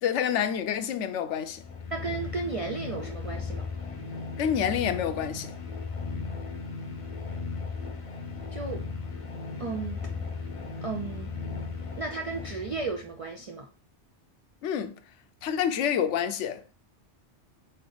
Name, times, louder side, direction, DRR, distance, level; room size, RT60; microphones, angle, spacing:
voice 1, 0.0-1.6 4.4-5.5 14.6-15.0 15.4-16.8, left 8 dB, 85° left, 0.9 m, -28 dB
sound 1, 1.4-13.1, left 4 dB, 35° left, 0.6 m, -36 dB
voice 2, 1.9-3.7 8.5-8.8 9.6-10.0 10.8-11.3 12.0-13.7, right 4 dB, 60° right, 0.3 m, -34 dB
3.9 x 3.4 x 3.8 m
omnidirectional pair, 1.2 m